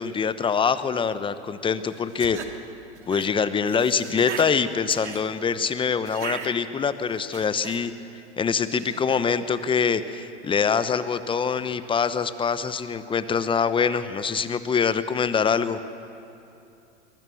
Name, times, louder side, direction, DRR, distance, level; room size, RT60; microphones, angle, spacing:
voice 1, 0.0-2.4 3.1-7.9 8.4-15.8, left 6 dB, 15° left, 13 dB, 0.9 m, -24 dB
sound 1, 1.9-2.5 2.9-3.3 3.6-4.5 4.9-5.2 6.1-6.5 7.1-7.8 8.7-9.3, right 7 dB, 80° right, 2.0 m, -37 dB
23.0 x 19.5 x 7.1 m, 2.7 s
hypercardioid pair, 100°, 35 cm